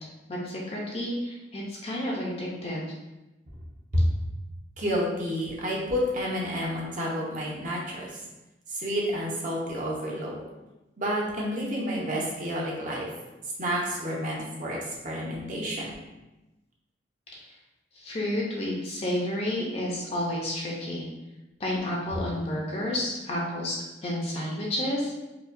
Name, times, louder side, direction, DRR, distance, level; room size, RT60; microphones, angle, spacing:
voice 1, 0.3-2.8 17.9-21.1 21.6-23.8 24.0-25.1, left 1 dB, 35° left, -4 dB, 0.6 m, -30 dB
voice 2, 4.8-8.1 8.7-10.4 11.0-13.1 13.6-14.8 15.0-15.9, equal, 45° right, -3 dB, 0.8 m, -29 dB
4.8 x 2.3 x 2.5 m, 1.0 s
head